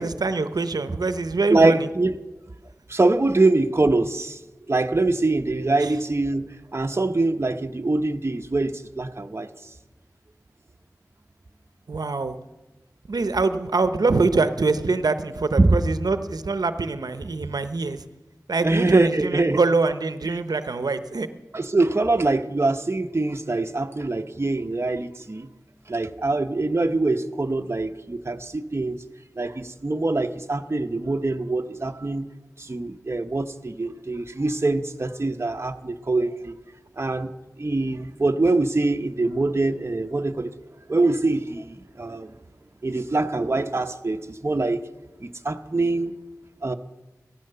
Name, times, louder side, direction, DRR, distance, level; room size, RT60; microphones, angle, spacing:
voice 1, 0.0-1.9 5.8-5.9 11.9-12.3 13.1-18.0 18.5-21.3, right 3 dB, 90° right, 11 dB, 0.7 m, -24 dB
voice 2, 1.5-2.1 2.9-4.4 4.7-9.5 15.6-15.8 17.4-17.5 18.6-19.6 20.3-20.4 21.5-25.5 25.9-29.0 29.4-32.3 32.6-36.6 37.0-37.3 37.6-40.5 40.9-42.4 42.8-44.8 45.2-46.1 46.6-46.7, right 2 dB, 40° right, 6 dB, 0.8 m, -24 dB
15.5 x 13.5 x 6.7 m, 1.1 s
wide cardioid pair, 55°, 6 cm